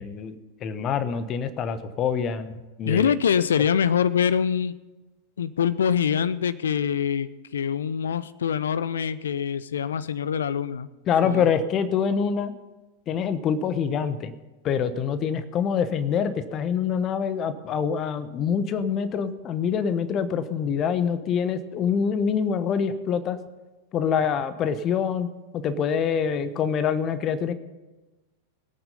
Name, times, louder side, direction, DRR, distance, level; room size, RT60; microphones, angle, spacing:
voice 1, 0.0-3.1 11.1-12.5 13.1-14.3 14.6-23.4 23.9-27.5, left 7 dB, 30° left, 12 dB, 1.1 m, -25 dB
voice 2, 2.8-4.8 5.4-10.9 11.2-11.5, left 7 dB, 65° left, 15 dB, 0.6 m, -24 dB
20.5 x 9.0 x 5.6 m, 1.1 s
figure-of-eight pair, 90°, 0 cm